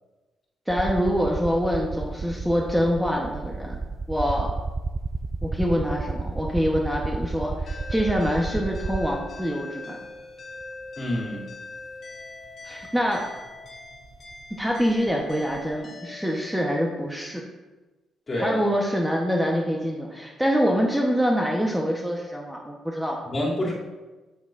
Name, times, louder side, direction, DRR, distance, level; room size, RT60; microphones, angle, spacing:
voice 1, 0.7-3.8 4.1-4.5 5.4-10.0 12.6-13.3 14.6-17.4 18.4-23.2, equal, 5° right, -1 dB, 1.0 m, -25 dB
sound 1, 0.7-9.5 10.6-10.7 12.8-12.9 13.2-15.7, right 3 dB, 30° right, 0.3 m, -32 dB
sound 2, 7.7-16.4, left 3 dB, 50° left, 1.8 m, -42 dB
voice 2, 11.0-11.5 18.3-18.6 23.2-23.7, left 1 dB, 35° left, -5 dB, 2.7 m, -27 dB
8.4 x 8.0 x 2.6 m, 1.2 s
cardioid pair, 90°, 0 cm